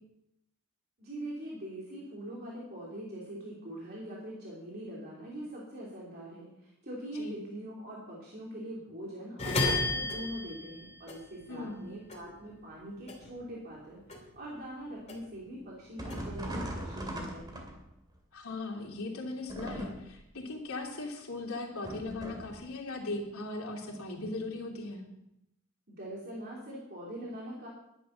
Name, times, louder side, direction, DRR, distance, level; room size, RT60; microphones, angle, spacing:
voice 1, 1.0-17.7 25.9-27.7, right 1 dB, 45° right, -5 dB, 3.1 m, -43 dB
sound 1, 9.4-11.8 12.1-13.8 14.1-15.5 15.9-17.0, left 2 dB, 30° left, 2.7 m, -34 dB
voice 2, 11.5-11.8 18.3-25.0, left 2 dB, 80° left, 0 dB, 3.0 m, -38 dB
sound 2, 16.0-18.1 19.5-20.3 21.8-22.6, right 1 dB, 20° right, 2.6 m, -39 dB
11.5 x 10.5 x 5.8 m, 0.83 s
head